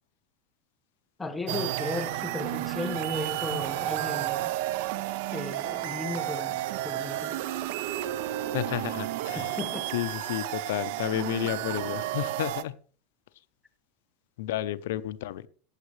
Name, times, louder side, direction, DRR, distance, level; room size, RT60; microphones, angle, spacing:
voice 1, 1.2-4.5 5.3-7.4 9.3-9.9, left 2 dB, 10° left, 1.2 m, -35 dB
sound 1, 1.5-12.6, right 14 dB, 65° right, 0.8 m, -32 dB
voice 2, 8.5-9.6 9.9-12.7 14.4-15.4, left 14 dB, 80° left, 0.7 m, -31 dB
15.0 x 9.7 x 3.2 m
supercardioid pair, 150°, 0 cm